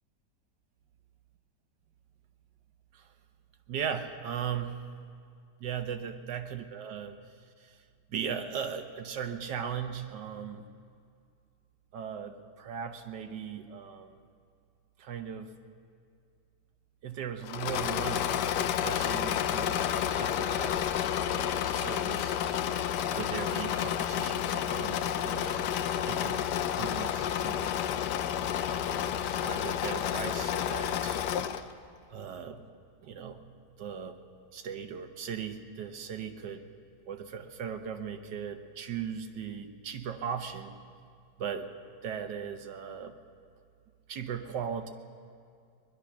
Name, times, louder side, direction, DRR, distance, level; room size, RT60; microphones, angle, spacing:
voice 1, 3.7-4.8 5.6-7.2 7.6-7.8 8.1-10.6 11.9-14.2 15.0-15.5 17.0-18.2 18.8-19.8 20.1-20.8 21.3-22.4 23.1-25.7 26.0-26.4 26.7-27.8 28.7-31.2 32.1-32.7 33.0-33.4 33.8-34.2 34.5-36.7 37.1-40.7 41.4-41.7 42.0-43.2 44.1-44.9, right 7 dB, 85° right, 7 dB, 1.6 m, -38 dB
Engine / Mechanisms, 17.4-31.7, left 9 dB, 85° left, 1.3 m, -30 dB
20.5 x 11.5 x 6.0 m, 2.3 s
omnidirectional pair, 1.8 m